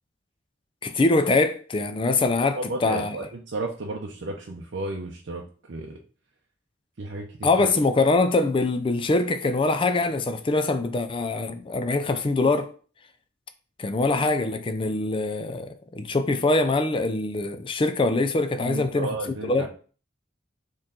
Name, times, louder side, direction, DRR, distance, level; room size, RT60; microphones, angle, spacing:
voice 1, 0.8-3.2 7.4-12.7 13.8-19.1 19.4-19.7, left 3 dB, 25° left, 0.4 m, -23 dB
voice 2, 2.6-6.0 7.0-7.5 18.6-19.7, right 2 dB, 70° right, 0.6 m, -33 dB
4.4 x 3.1 x 3.7 m
head